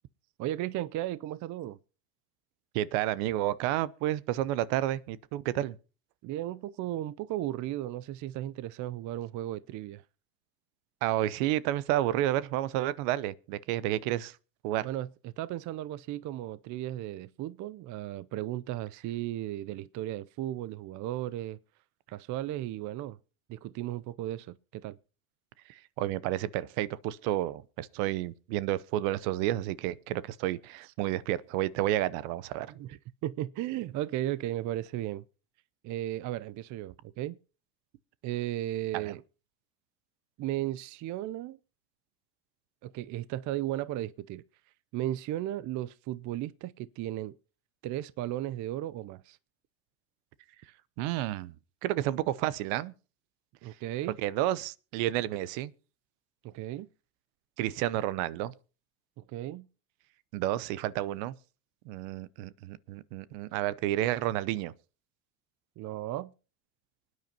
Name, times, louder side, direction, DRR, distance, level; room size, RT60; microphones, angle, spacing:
voice 1, 0.4-1.8 6.2-10.0 14.8-21.6 22.1-23.2 23.5-25.0 32.7-35.2 35.8-37.4 38.2-39.2 40.4-41.6 42.8-44.4 44.9-47.3 47.8-49.4 53.6-54.2 56.4-56.9 59.2-59.7 65.8-66.3, right 14 dB, 45° right, 0.5 m, -35 dB
voice 2, 2.7-5.8 11.0-14.4 14.6-14.9 25.7-32.7 38.9-39.1 51.0-51.5 51.8-52.9 54.2-55.7 57.6-58.5 60.3-61.3 61.9-64.7, right 14 dB, 70° right, 0.8 m, -30 dB
25.0 x 9.5 x 2.8 m
supercardioid pair, 95°, 43 cm